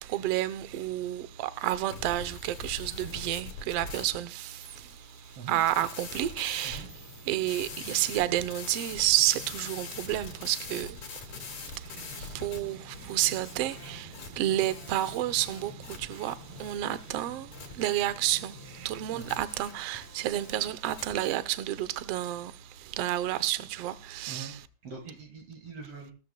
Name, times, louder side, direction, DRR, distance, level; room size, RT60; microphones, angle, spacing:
voice 1, 0.0-4.9 5.5-6.9 7.3-11.0 11.8-22.5 22.8-24.6, right 14 dB, 70° right, 1.5 m, -30 dB
sound 1, 1.9-21.4, left 5 dB, 65° left, 3.4 m, -44 dB
sound 2, 6.5-19.2, equal, 35° right, 6.4 m, -50 dB
voice 2, 24.8-26.1, right 5 dB, 55° right, 2.6 m, -42 dB
17.5 x 13.0 x 2.2 m
omnidirectional pair, 3.4 m